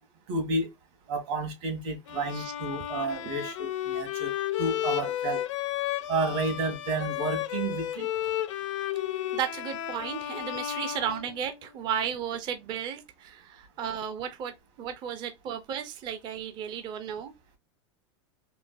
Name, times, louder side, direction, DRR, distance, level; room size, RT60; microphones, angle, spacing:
voice 1, 0.3-0.7 1.1-4.3 4.6-5.4 6.1-8.1, right 2 dB, 60° right, 1.7 m, -31 dB
Bowed string instrument, 2.1-11.8, left 12 dB, 85° left, 0.7 m, -33 dB
voice 2, 9.3-17.3, right 8 dB, 30° right, 0.4 m, -34 dB
3.8 x 2.5 x 2.4 m
supercardioid pair, 145°, 15 cm